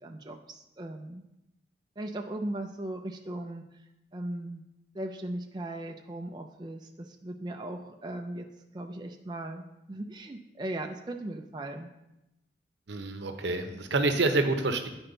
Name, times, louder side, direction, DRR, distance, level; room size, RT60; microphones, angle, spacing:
voice 1, 0.0-1.2 2.0-3.8 4.1-4.6 4.9-8.5 8.7-11.9, right 1 dB, 25° right, 3 dB, 0.4 m, -38 dB
voice 2, 12.9-14.9, right 2 dB, 80° right, 6 dB, 0.7 m, -27 dB
9.5 x 4.4 x 3.9 m, 0.90 s
head